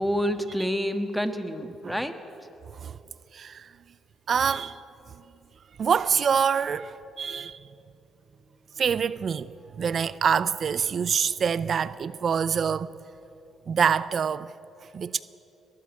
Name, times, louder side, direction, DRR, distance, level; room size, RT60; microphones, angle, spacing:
voice 1, 0.0-2.1 2.4-2.5, equal, ahead, 1.6 m, -28 dB
voice 2, 3.3-3.7 4.3-4.8 5.8-7.6 8.8-12.9 13.7-14.5 14.9-15.2, right 7 dB, 50° right, 0.5 m, -26 dB
21.0 x 13.5 x 9.3 m
cardioid pair, 90°, 0 cm